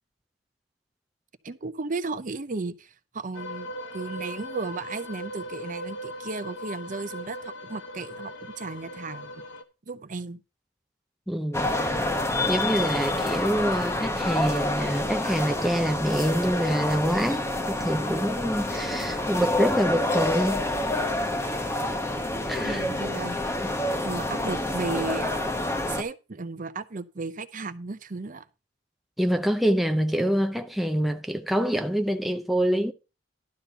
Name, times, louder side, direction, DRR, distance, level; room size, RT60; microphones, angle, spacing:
voice 1, 1.4-9.4 9.9-10.4 22.6-23.6 24.0-28.4, right 3 dB, 45° right, 0.7 m, -35 dB
sound 1, 3.3-9.6, equal, 80° left, 1.1 m, -39 dB
voice 2, 11.3-11.7 12.5-20.7 22.5-22.9 23.6-23.7 29.2-32.9, equal, ahead, 0.5 m, -26 dB
sound 2, 11.5-26.0, left 1 dB, 15° left, 0.9 m, -28 dB
11.5 x 4.3 x 6.6 m
head